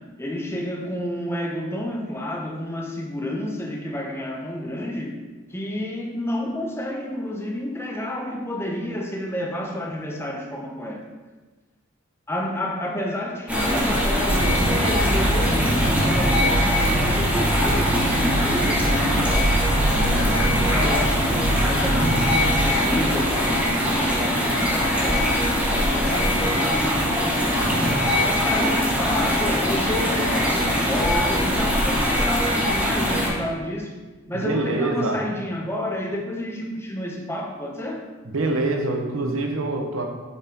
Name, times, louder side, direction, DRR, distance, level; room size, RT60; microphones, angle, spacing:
voice 1, 0.0-5.2 5.5-11.0 12.3-25.3 25.7-27.7 28.2-33.9 34.3-38.0, left 1 dB, 10° left, 0 dB, 0.7 m, -30 dB
sound 1, 13.5-33.3, equal, 5° right, 1.5 m, -22 dB
sound 2, 14.3-22.7, right 1 dB, 35° right, 0.6 m, -25 dB
voice 2, 34.3-35.2 38.3-40.1, right 2 dB, 80° right, 3 dB, 0.9 m, -25 dB
8.1 x 5.6 x 2.9 m, 1.3 s
head